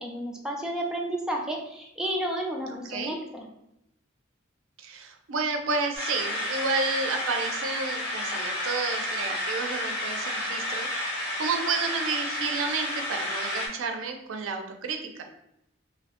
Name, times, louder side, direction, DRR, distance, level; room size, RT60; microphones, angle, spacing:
voice 1, 0.0-3.5, right 1 dB, 5° right, -1 dB, 0.4 m, -32 dB
voice 2, 2.7-3.1 4.8-15.2, right 4 dB, 90° right, 5 dB, 0.4 m, -31 dB
sound 1, 5.9-13.7, left 1 dB, 55° left, 0.8 m, -31 dB
2.6 x 2.0 x 2.8 m, 0.82 s
head